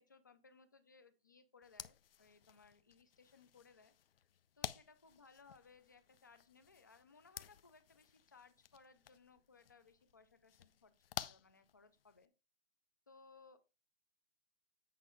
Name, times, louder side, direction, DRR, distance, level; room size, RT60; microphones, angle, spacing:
voice 1, 0.0-3.9 4.6-12.3 13.1-13.6, left 4 dB, 20° left, 11 dB, 0.3 m, -64 dB
sound 1, 1.6-12.3, left 9 dB, 65° left, 0.6 m, -52 dB
8.4 x 5.4 x 3.6 m, 0.30 s
hypercardioid pair, 160°, 31 cm